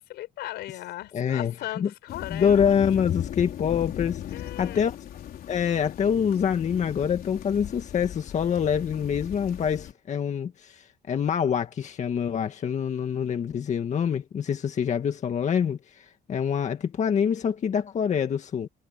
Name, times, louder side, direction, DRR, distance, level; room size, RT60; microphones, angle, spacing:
voice 1, 0.0-2.9 4.3-4.9, left 15 dB, 80° left, 5.2 m, -38 dB
voice 2, 1.1-1.9 2.3-4.9 5.5-18.7, left 7 dB, 45° left, 1.9 m, -26 dB
sound 1, 2.1-9.9, left 11 dB, 60° left, 4.3 m, -37 dB
cardioid pair, 110°, 17 cm